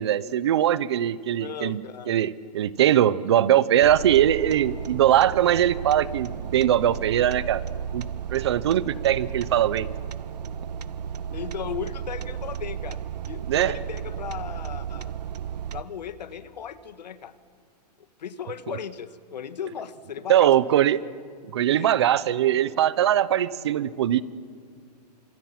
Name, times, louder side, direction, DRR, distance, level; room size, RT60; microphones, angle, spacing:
voice 1, 0.0-1.8 2.1-7.6 7.9-9.9 13.5-13.8 20.3-21.0 21.4-24.2, right 11 dB, 40° right, 18 dB, 0.8 m, -21 dB
voice 2, 1.4-2.3 11.3-13.0 13.3-15.2 15.7-17.3 18.2-21.1 21.5-21.9, left 8 dB, 85° left, 11 dB, 1.7 m, -36 dB
sound 1, 3.8-15.8, right 8 dB, 75° right, 1.2 m, -34 dB
30.0 x 26.0 x 6.1 m, 2.3 s
hypercardioid pair, 175°, 21 cm